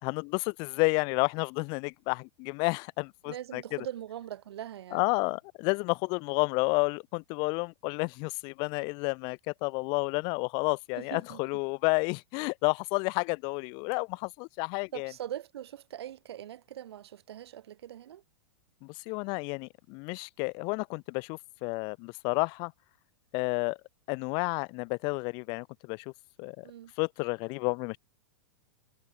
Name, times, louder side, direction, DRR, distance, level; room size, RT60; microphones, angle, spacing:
voice 1, 0.0-3.6 4.9-15.1 18.8-22.7 23.3-23.8 24.1-26.1 26.4-26.7 27.0-28.0, left 32 dB, 35° left, 3.5 m, -31 dB
voice 2, 3.2-5.1 11.0-11.4 14.9-18.2 26.6-26.9, right 11 dB, 70° right, 7.8 m, -41 dB
supercardioid pair, 165°, 14 cm